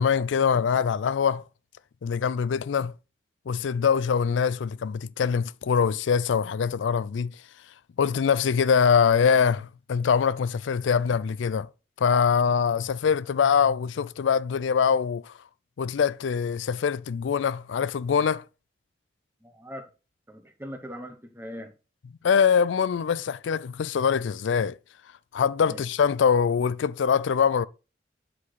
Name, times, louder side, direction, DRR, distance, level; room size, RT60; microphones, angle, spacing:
voice 1, 0.0-1.4 2.0-2.9 3.5-7.3 8.0-11.7 12.0-15.3 15.8-18.4 22.2-24.8 25.3-27.7, left 6 dB, 85° left, 0.4 m, -23 dB
voice 2, 19.4-19.8 20.3-21.7 25.6-25.8, equal, 10° right, 1.2 m, -40 dB
8.4 x 4.8 x 4.1 m
head